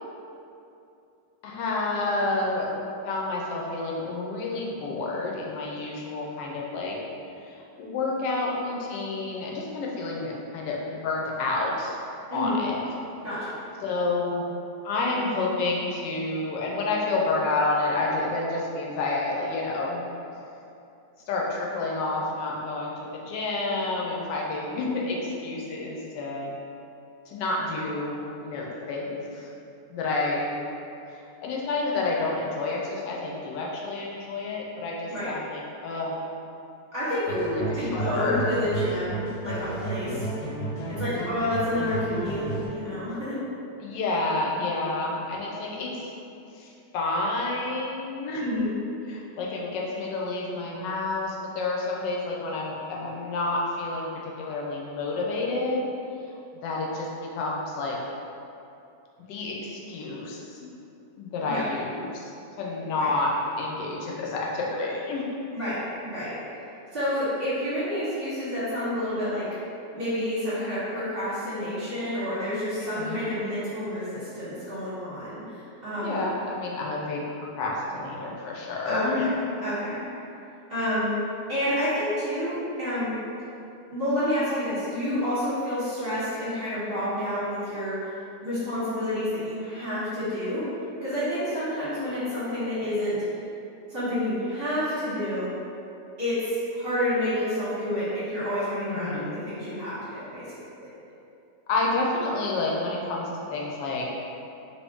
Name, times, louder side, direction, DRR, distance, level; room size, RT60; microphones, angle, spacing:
voice 1, 1.4-7.0 7.4-12.0 12.3-12.8 13.8-14.5 14.8-20.0 21.3-26.5 27.3-29.5 29.9-30.6 31.1-36.2 37.3-38.5 41.0-41.2 43.8-46.1 46.5-48.4 49.1-55.9 56.6-58.0 59.3-60.7 61.1-62.3 62.6-65.2 72.8-73.2 75.9-77.2 77.6-79.3 79.9-80.0 98.9-99.3 101.7-104.1, left 2 dB, 85° left, -2 dB, 1.2 m, -29 dB
voice 2, 13.2-13.6 35.1-35.3 36.9-40.3 40.9-43.4 48.4-48.7 61.5-61.7 62.9-63.1 65.5-66.4 66.9-69.5 69.9-76.3 78.8-80.0 80.7-81.1 81.5-83.1 83.9-88.0 88.4-90.7 91.0-93.2 93.9-95.5 96.2-100.5 100.8-100.9, left 1 dB, 35° right, -13 dB, 1.3 m, -29 dB
sound 1, 37.3-42.7, right 2 dB, 70° left, 1.5 m, -32 dB
2.9 x 2.7 x 3.4 m, 2.7 s
omnidirectional pair, 1.9 m